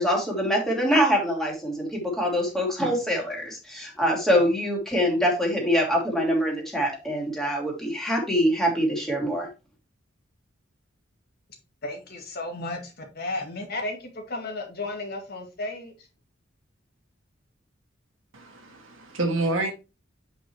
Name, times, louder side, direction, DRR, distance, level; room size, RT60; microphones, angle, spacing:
voice 1, 0.0-9.5, equal, ahead, 2.8 m, -24 dB
voice 2, 11.8-15.9, left 2 dB, 50° left, 2.1 m, -34 dB
voice 3, 18.3-19.7, right 2 dB, 85° right, 2.0 m, -28 dB
8.2 x 5.4 x 3.0 m
head